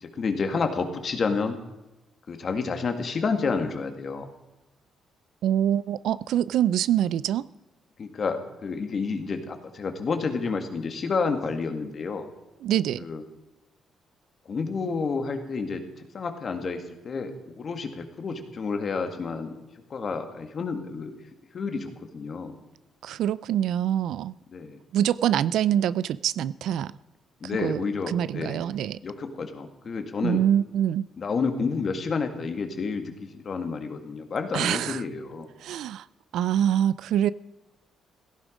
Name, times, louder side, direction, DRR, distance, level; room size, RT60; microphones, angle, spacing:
voice 1, 0.0-1.6 2.3-4.3 8.0-12.3 13.0-13.2 14.5-15.8 16.1-19.6 19.9-21.2 21.5-22.5 24.5-24.8 27.4-28.6 29.0-30.4 31.2-35.5, left 4 dB, 40° left, 1.9 m, -30 dB
voice 2, 5.4-7.5 12.6-13.0 23.0-24.3 24.9-26.9 27.6-27.8 28.1-29.0 30.2-31.1 34.5-35.0 35.6-36.0 36.3-37.3, right 10 dB, 75° right, 0.4 m, -25 dB
16.5 x 14.5 x 5.1 m
cardioid pair, 140°, 0 cm